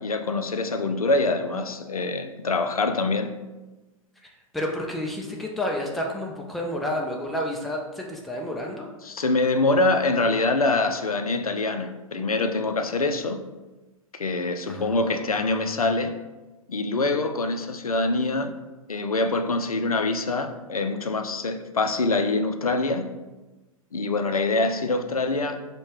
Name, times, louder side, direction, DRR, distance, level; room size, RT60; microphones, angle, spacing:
voice 1, 0.0-3.3 9.0-13.4 14.1-16.2 16.7-18.5 18.9-23.1 23.9-25.6, left 3 dB, 80° left, 0.4 m, -25 dB
voice 2, 4.5-8.9 14.7-15.7, left 1 dB, ahead, 0.3 m, -30 dB
6.3 x 2.2 x 3.2 m
figure-of-eight pair, 105°, 18 cm